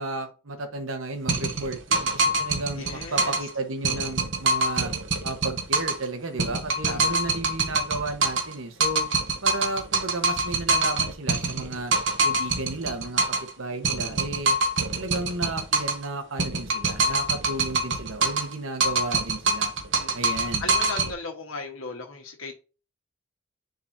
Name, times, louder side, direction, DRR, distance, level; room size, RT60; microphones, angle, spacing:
voice 1, 0.0-4.9 5.2-9.1 9.4-11.9 12.2-14.6 14.9-19.7 20.1-20.7, right 2 dB, 85° right, 7 dB, 1.2 m, -33 dB
sound 1, 1.3-3.5 3.8-6.1 6.4-8.5 8.8-13.5 13.8-16.1 16.4-18.5 18.8-21.1, right 3 dB, 65° right, 1.0 m, -25 dB
voice 2, 2.7-3.3 6.9-7.2 14.0-14.4 19.9-20.3 20.6-22.6, left 3 dB, 85° left, 1 dB, 1.3 m, -37 dB
9.9 x 4.0 x 2.7 m, 0.33 s
head